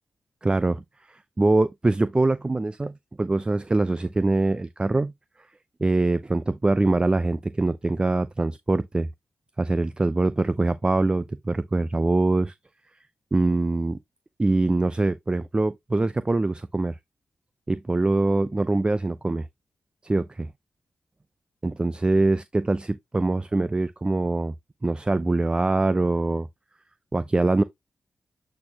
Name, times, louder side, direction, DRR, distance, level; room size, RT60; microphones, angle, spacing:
voice 1, 0.4-0.8 1.4-5.1 5.8-9.1 9.6-12.5 13.3-14.0 14.4-17.0 17.7-19.5 20.0-20.5 21.6-24.5 24.8-26.5 27.1-27.6, right 2 dB, 25° right, 0.5 m, -23 dB
8.5 x 4.2 x 2.8 m
supercardioid pair, 45°, 4 cm